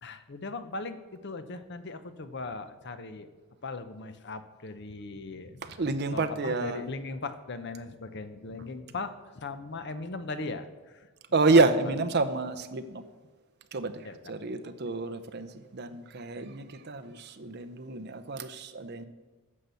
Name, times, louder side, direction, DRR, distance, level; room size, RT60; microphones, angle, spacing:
voice 1, 0.0-1.0 1.2-3.3 3.6-5.8 6.1-10.7 10.9-11.1 14.0-14.2, left 3 dB, 50° left, 0.7 m, -38 dB
voice 2, 5.6-6.9 11.3-13.0 13.7-19.1, right 3 dB, 50° right, 0.7 m, -28 dB
9.9 x 6.7 x 6.9 m
head